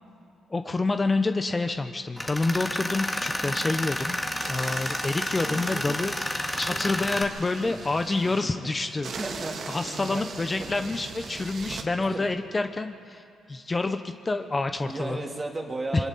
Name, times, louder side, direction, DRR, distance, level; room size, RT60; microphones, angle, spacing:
voice 1, 0.5-4.2 4.5-9.1 9.7-15.2 15.9-16.0, left 3 dB, 25° left, 8 dB, 0.9 m, -28 dB
Tools, 2.2-7.2, left 1 dB, 10° left, 1.9 m, -30 dB
sound 1, 4.4-8.4 9.0-11.9, right 5 dB, 60° right, 1.8 m, -40 dB
voice 2, 5.4-6.0 6.7-7.1 7.7-10.2 10.6-10.7 11.9-12.3 14.8-16.1, right 2 dB, 25° right, 1 dB, 3.1 m, -36 dB
26.0 x 24.0 x 4.2 m, 2.4 s
cardioid pair, 70°, 0 cm